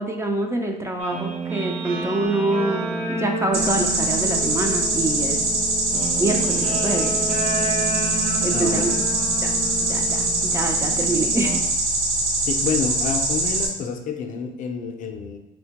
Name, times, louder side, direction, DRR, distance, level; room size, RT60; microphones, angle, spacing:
voice 1, 0.0-5.4 6.2-7.1 8.4-8.9 9.4-9.6 9.9-11.6, right 2 dB, 15° right, 3 dB, 0.3 m, -26 dB
Guitar, 1.0-11.6, right 2 dB, 40° right, 0.7 m, -30 dB
sound 1, 3.5-13.7, right 2 dB, 80° right, 0.7 m, -23 dB
voice 2, 8.5-9.0 12.4-15.4, left 6 dB, 50° left, 4 dB, 0.4 m, -28 dB
4.1 x 2.1 x 2.8 m, 0.98 s
cardioid pair, 110°, 17 cm